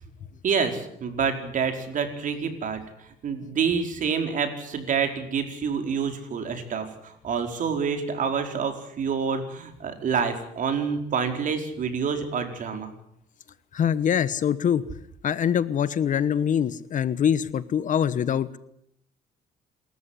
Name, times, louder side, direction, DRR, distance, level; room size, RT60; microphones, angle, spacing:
voice 1, 0.4-2.8 3.2-12.9, right 6 dB, 50° right, 6 dB, 4.7 m, -27 dB
voice 2, 13.7-14.8 15.2-18.6, left 8 dB, 50° left, 16 dB, 1.2 m, -24 dB
27.5 x 14.0 x 9.9 m, 0.73 s
cardioid pair, 110°, 17 cm